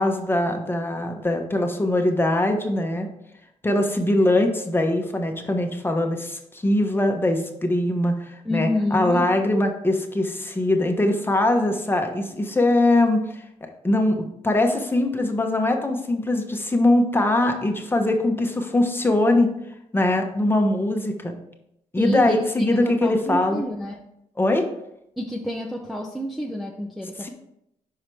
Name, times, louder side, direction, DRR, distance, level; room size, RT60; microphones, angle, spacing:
voice 1, 0.0-3.1 3.6-13.2 13.6-19.5 19.9-21.3 21.9-23.6 24.4-24.6 27.2-27.3, left 1 dB, 15° left, 3 dB, 1.1 m, -22 dB
voice 2, 8.4-9.3 22.0-24.0 25.2-27.3, left 1 dB, ahead, -1 dB, 0.7 m, -29 dB
5.7 x 4.7 x 4.7 m, 0.79 s
cardioid pair, 80°, 13 cm